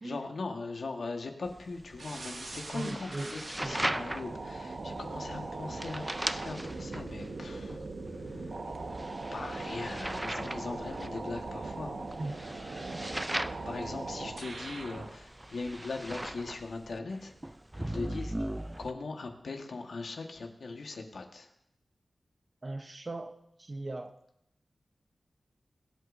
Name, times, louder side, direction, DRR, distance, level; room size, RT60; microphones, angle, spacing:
voice 1, 0.0-7.9 8.2-8.5 9.3-12.0 13.6-17.3 17.8-21.5, left 3 dB, 80° left, 3 dB, 1.4 m, -40 dB
sound 1, 1.5-18.9, right 1 dB, 15° right, 0.4 m, -39 dB
sound 2, 2.0-15.1, right 3 dB, 70° right, 1.3 m, -40 dB
voice 2, 2.7-3.8 12.2-12.3 22.6-24.1, right 2 dB, 35° right, 7 dB, 0.8 m, -39 dB
22.5 x 8.2 x 2.6 m, 0.78 s
wide cardioid pair, 115°, 0 cm